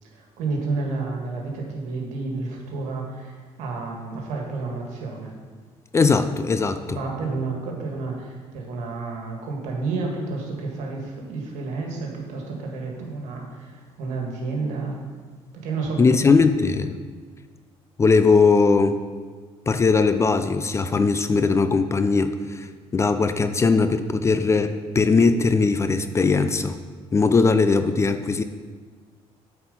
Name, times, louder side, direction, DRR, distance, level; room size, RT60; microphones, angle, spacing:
voice 1, 0.0-5.3 6.9-15.1 15.5-16.5, right 3 dB, 80° right, 0 dB, 1.7 m, -30 dB
voice 2, 5.9-7.0 16.0-17.0 18.0-19.0 19.7-22.7 22.9-26.8 27.1-28.4, left 4 dB, 25° left, 10 dB, 0.4 m, -19 dB
8.7 x 4.4 x 5.4 m, 1.5 s
cardioid pair, 115°, 12 cm